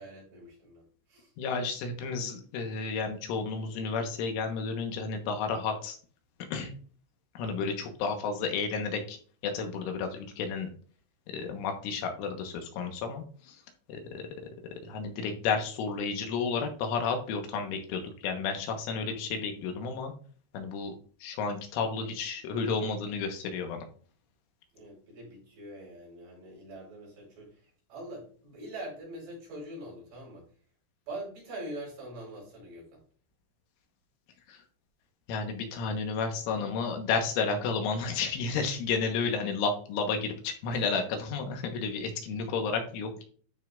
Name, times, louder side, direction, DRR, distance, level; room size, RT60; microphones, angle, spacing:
voice 1, 0.0-1.3 24.7-30.5 31.1-33.0 40.7-40.8, right 1 dB, 50° right, -5 dB, 6.2 m, -44 dB
voice 2, 1.4-6.0 6.5-6.7 7.4-9.2 9.4-10.7 11.3-13.6 13.9-14.3 14.8-20.1 20.5-20.9 21.2-23.9 34.5-34.6 35.3-43.2, left 5 dB, 80° left, 4 dB, 3.5 m, -32 dB
12.5 x 5.6 x 2.5 m, 0.42 s
omnidirectional pair, 5.8 m